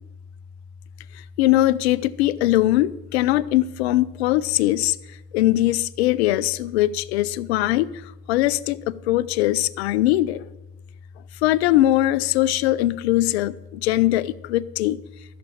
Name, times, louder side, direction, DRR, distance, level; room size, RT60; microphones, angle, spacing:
voice 1, 1.1-5.0 5.3-7.9 8.3-10.5 11.4-15.0, left 15 dB, 40° left, 16 dB, 0.5 m, -21 dB
14.5 x 6.9 x 6.3 m, 1.0 s
hypercardioid pair, 135°, 50 cm